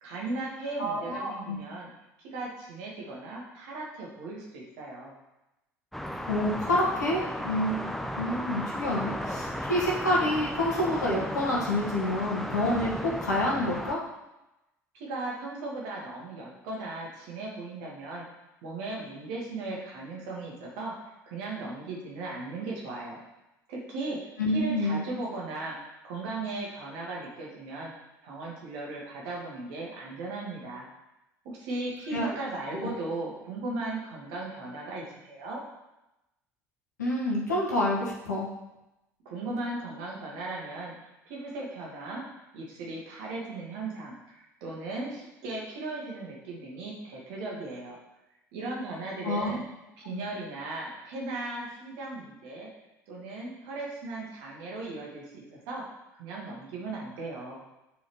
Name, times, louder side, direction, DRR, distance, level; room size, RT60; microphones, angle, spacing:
voice 1, 0.0-1.9 2.2-5.1 14.9-18.3 18.6-20.9 21.2-23.2 23.7-24.2 24.5-27.9 28.2-30.9 31.4-35.6 39.3-40.9 41.3-42.2 42.5-48.0 48.5-49.6 50.0-52.7 53.1-55.8 56.2-57.6, right 2 dB, 60° right, -3 dB, 1.9 m, -37 dB
voice 2, 0.8-1.6 6.3-7.9 8.2-14.0 24.4-25.0 32.1-32.3 32.7-32.9 37.0-38.5 49.2-49.6 50.1-50.2, left 1 dB, 80° left, -4 dB, 1.5 m, -28 dB
sound 1, 5.9-13.9, equal, ahead, 0.7 m, -35 dB
9.0 x 4.8 x 3.1 m, 0.96 s
figure-of-eight pair, 60°, 9 cm